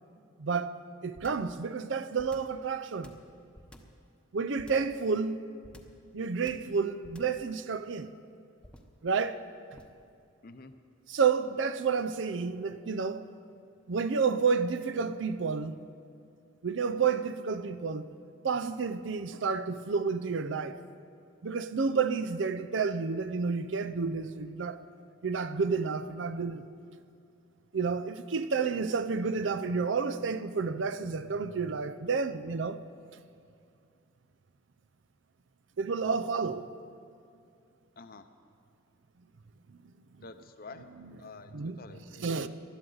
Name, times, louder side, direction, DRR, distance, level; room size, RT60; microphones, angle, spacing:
voice 1, 0.4-3.1 4.3-5.4 6.1-8.1 9.0-9.4 11.1-13.3 13.9-15.8 16.6-18.1 18.4-20.8 21.4-24.8 25.2-26.6 27.7-32.8 35.8-36.7 40.2-40.3 41.0-41.2 41.5-42.5, right 5 dB, 65° right, 0.5 m, -30 dB
sound 1, 1.1-1.5 2.2-2.6 3.0-4.0 4.6-5.0 5.6-6.0 6.5-6.8 7.0-7.4 8.6-9.0 9.8-10.0, equal, 5° left, 0.9 m, -51 dB
voice 2, 40.2-40.8 41.2-42.5, left 4 dB, 50° left, 0.7 m, -49 dB
19.5 x 12.5 x 3.9 m
head